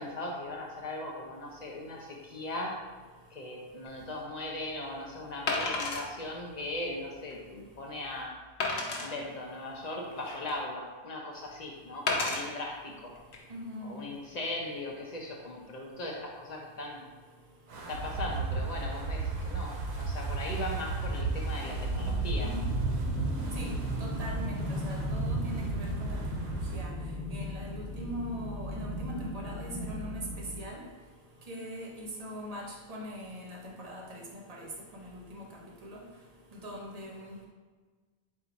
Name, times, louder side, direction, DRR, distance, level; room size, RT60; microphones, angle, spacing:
voice 1, 0.0-2.8 3.3-8.4 9.0-13.2 13.8-17.0 17.9-22.6, left 2 dB, 50° left, -1 dB, 0.6 m, -38 dB
Wood, 3.9-4.0 5.5-6.1 6.7-6.8 7.3-7.4 8.6-9.1 9.9-10.6 12.1-12.4 13.2-13.4, left 3 dB, 70° left, 0.9 m, -31 dB
voice 2, 13.5-14.0 23.6-23.7 24.0-26.9 27.3-30.3 30.6-30.8 31.5-35.4 35.8-36.0 36.6-37.5, equal, 40° right, -1 dB, 0.7 m, -41 dB
Wind, 17.7-26.9, right 3 dB, 80° right, 0.9 m, -34 dB
sound 1, 21.5-30.6, left 1 dB, ahead, 0.3 m, -37 dB
4.3 x 2.4 x 3.9 m, 1.4 s
omnidirectional pair, 1.1 m